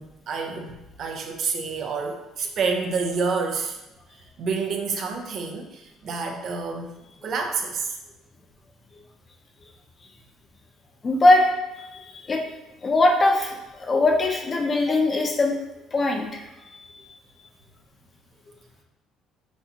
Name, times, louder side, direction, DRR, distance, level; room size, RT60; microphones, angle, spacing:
voice 1, 0.0-3.8 4.4-6.9 7.2-8.0, right 4 dB, 55° right, 3 dB, 0.7 m, -28 dB
voice 2, 11.0-11.5 11.9-12.4 12.8-15.6 15.9-16.5, left 2 dB, 35° left, 2 dB, 0.8 m, -21 dB
6.1 x 2.7 x 2.9 m, 0.97 s
cardioid pair, 95°, 0 cm